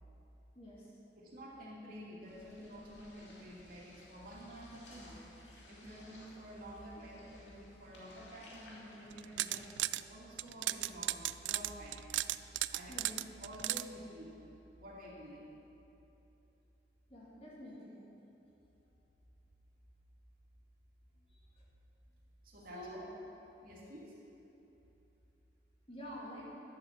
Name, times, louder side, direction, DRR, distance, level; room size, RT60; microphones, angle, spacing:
voice 1, 0.5-0.9 12.9-13.1 17.1-18.0 22.7-23.0 25.9-26.5, equal, 35° left, -6 dB, 2.5 m, -48 dB
voice 2, 1.2-5.2 5.7-12.0 12.7-14.4 14.8-15.4 22.4-23.1 23.6-24.2, equal, 55° right, -5 dB, 2.7 m, -50 dB
sound 1, 2.2-9.6, left 1 dB, 90° left, 2.4 m, -58 dB
sound 2, 9.1-10.0 10.4-13.8, right 15 dB, 85° right, 0.3 m, -35 dB
11.5 x 7.8 x 7.4 m, 3.0 s
head